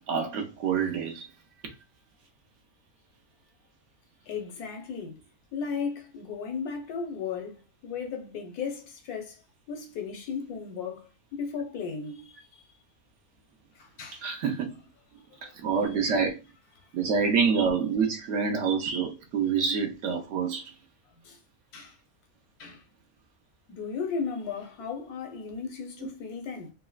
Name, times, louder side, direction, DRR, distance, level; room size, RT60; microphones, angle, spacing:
voice 1, 0.1-1.2 14.2-14.7 15.6-16.3 16.9-20.6, right 6 dB, 60° right, 0.9 m, -26 dB
voice 2, 4.3-5.2 5.5-9.4 9.7-12.6 14.0-14.2 15.4-15.5 21.2-21.4 21.7-21.9 22.6-22.8 23.7-26.7, left 5 dB, 85° left, 1.3 m, -35 dB
4.0 x 2.0 x 2.3 m
omnidirectional pair, 1.6 m